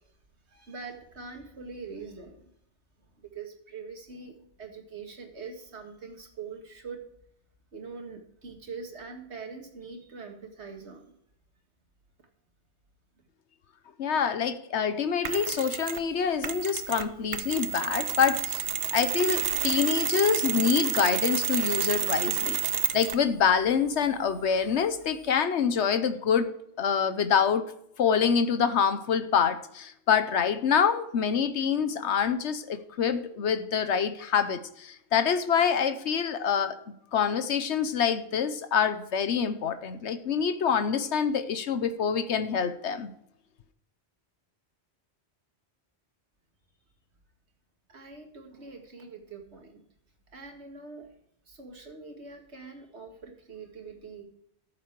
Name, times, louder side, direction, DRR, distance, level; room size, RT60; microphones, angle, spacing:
voice 1, 0.5-2.4 3.2-7.0 7.7-11.1 47.9-49.8 50.3-51.1 51.5-54.2, right 4 dB, 80° right, 3 dB, 2.3 m, -43 dB
voice 2, 14.0-18.7 18.9-26.5 26.8-27.6 28.0-36.7 37.1-43.1, left 7 dB, 85° left, 11 dB, 1.1 m, -26 dB
Mechanisms, 15.2-16.1 16.4-23.3, right 8 dB, 60° right, 1.0 m, -30 dB
14.0 x 7.4 x 4.7 m, 0.75 s
omnidirectional pair, 1.1 m